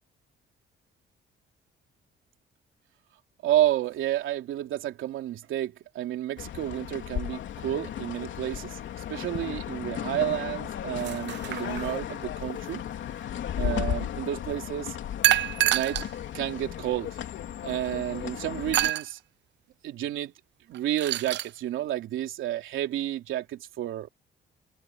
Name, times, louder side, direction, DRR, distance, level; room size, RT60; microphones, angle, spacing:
voice 1, 3.4-8.8 9.1-12.8 13.5-15.0 15.7-16.1 16.3-17.2 17.6-19.2 19.8-20.3 20.7-24.1, right 13 dB, 80° right, 3.1 m, -30 dB
sound 1, 6.4-18.9, left 10 dB, 70° left, 3.1 m, -35 dB
sound 2, 11.0-12.1 15.2-16.1 16.8-16.9 18.7-19.1 20.7-21.5, right 14 dB, 65° right, 0.5 m, -26 dB
cardioid pair, 90°, 20 cm